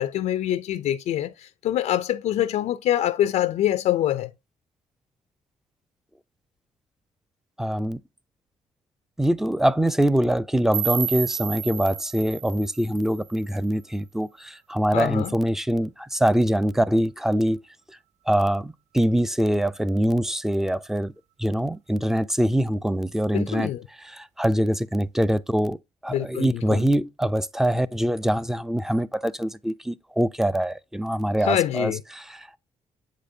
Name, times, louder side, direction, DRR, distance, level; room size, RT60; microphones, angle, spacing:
voice 1, 0.0-4.3 14.9-15.3 23.3-23.9 26.1-26.9 31.4-32.0, left 12 dB, 75° left, 0.4 m, -25 dB
voice 2, 7.6-8.0 9.2-17.6 18.3-21.1 21.4-23.7 24.1-25.8 26.0-32.6, right 1 dB, 5° right, 0.4 m, -24 dB
sound 1, 10.7-13.7, right 9 dB, 70° right, 0.7 m, -31 dB
7.6 x 5.0 x 2.6 m
cardioid pair, 100°, 12 cm